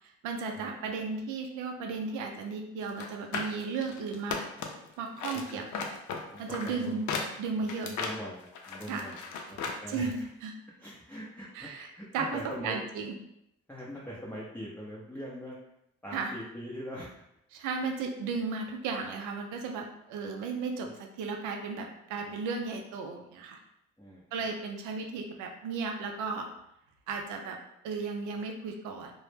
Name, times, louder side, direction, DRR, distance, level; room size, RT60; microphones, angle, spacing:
voice 1, 0.2-4.4 5.0-5.9 6.4-7.1 7.4-7.9 8.9-9.1 9.9-10.5 11.5-13.2 16.1-16.4 17.5-23.6 24.3-26.5 27.1-27.6 27.8-29.1, right 4 dB, 80° right, 3 dB, 0.5 m, -35 dB
sound 1, 2.9-4.9 5.2-9.8 10.1-10.2, left 5 dB, 75° left, 0.5 m, -36 dB
voice 2, 6.3-7.0 7.8-9.1 9.5-10.1 10.8-12.8 13.7-15.6 16.0-17.1 20.8-20.9 24.0-24.2, equal, 5° left, -7 dB, 0.5 m, -42 dB
2.1 x 2.0 x 3.1 m, 0.79 s
supercardioid pair, 65°, 30 cm